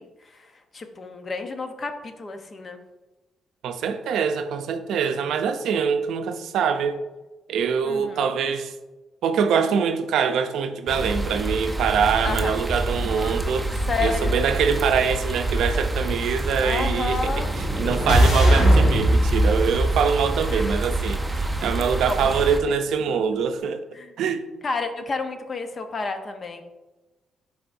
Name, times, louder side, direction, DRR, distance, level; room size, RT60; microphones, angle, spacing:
voice 1, 0.0-2.8 7.8-8.2 12.2-12.6 13.9-14.4 16.6-17.5 20.5-20.8 22.1-22.2 23.9-24.1 24.6-26.6, left 4 dB, 40° left, 0.7 m, -31 dB
voice 2, 3.6-7.0 7.5-8.7 9.2-17.4 17.8-23.8 24.2-24.4, right 6 dB, 80° right, 0.5 m, -24 dB
sound 1, 10.9-22.6, right 2 dB, 5° right, 0.6 m, -27 dB
sound 2, 17.0-21.1, equal, 90° left, 1.7 m, -20 dB
10.5 x 3.5 x 2.6 m
cardioid pair, 90°, 0 cm